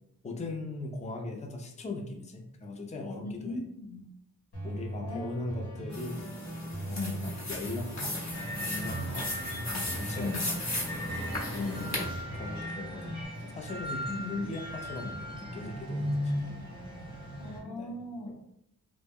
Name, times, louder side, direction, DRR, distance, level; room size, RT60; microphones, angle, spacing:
voice 1, 0.2-3.6 4.6-6.3 6.8-8.1 8.6-9.3 9.7-10.6 11.5-16.6 17.6-17.9 18.3-18.5, left 2 dB, 20° left, 2 dB, 0.4 m, -39 dB
voice 2, 3.2-4.0 5.0-5.3 6.9-7.4 10.2-10.5 11.6-12.0 14.1-14.3 17.4-18.5, left 2 dB, 75° left, 1 dB, 0.6 m, -38 dB
sound 1, 4.5-13.2, right 1 dB, 90° left, 1.0 m, -41 dB
sound 2, 5.9-12.1, left 1 dB, 45° left, 0.9 m, -36 dB
sound 3, 8.3-17.6, equal, 15° right, 0.9 m, -38 dB
2.1 x 2.0 x 3.4 m, 0.79 s
cardioid pair, 45°, 39 cm